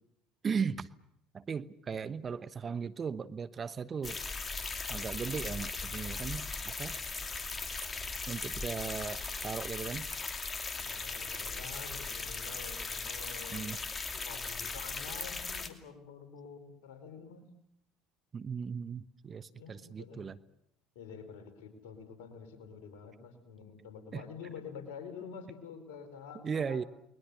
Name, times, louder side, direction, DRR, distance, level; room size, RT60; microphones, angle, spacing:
voice 1, 0.4-0.9 1.3-4.2 4.9-7.0 8.3-10.1 13.5-13.8 18.3-20.4 24.1-24.2 26.4-26.8, right 6 dB, 35° right, 14 dB, 1.1 m, -37 dB
sound 1, 4.0-15.7, left 4 dB, 25° left, 2.6 m, -38 dB
voice 2, 10.7-13.7 14.1-17.5 19.5-20.2 20.9-26.9, left 6 dB, 70° left, 8 dB, 4.1 m, -48 dB
30.0 x 21.5 x 6.8 m, 0.76 s
figure-of-eight pair, 60°, 0 cm